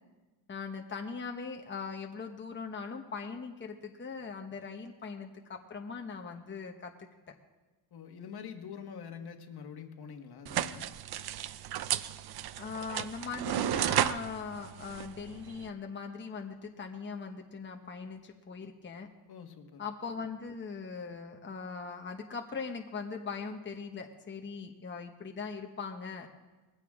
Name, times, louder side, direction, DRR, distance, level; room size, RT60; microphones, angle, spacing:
voice 1, 0.5-7.3 12.6-19.1 19.8-26.3, left 5 dB, 25° left, 3 dB, 1.1 m, -40 dB
voice 2, 7.9-10.9 19.3-19.8, left 7 dB, 60° left, 5 dB, 1.5 m, -45 dB
sound 1, 10.5-15.7, right 11 dB, 60° right, 0.6 m, -33 dB
20.5 x 15.5 x 3.7 m, 1.2 s
cardioid pair, 125°, 43 cm